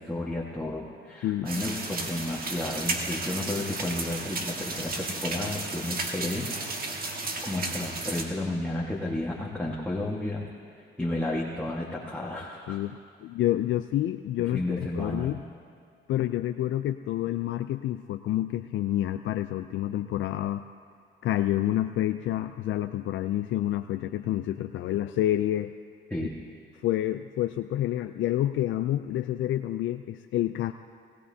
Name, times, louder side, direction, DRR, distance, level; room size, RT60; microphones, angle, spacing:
voice 1, 0.0-6.5 6.9-7.2 7.4-10.5 11.0-12.8 14.5-15.4 26.1-26.5, left 1 dB, 5° left, -4 dB, 1.6 m, -32 dB
sound 1, 1.5-8.2, right 3 dB, 50° right, 1.6 m, -33 dB
voice 2, 12.7-14.6 14.9-15.4 16.1-20.6 21.2-25.7 26.8-30.7, left 13 dB, 75° left, 9 dB, 0.4 m, -28 dB
20.0 x 16.5 x 2.8 m, 2.5 s
cardioid pair, 90°, 20 cm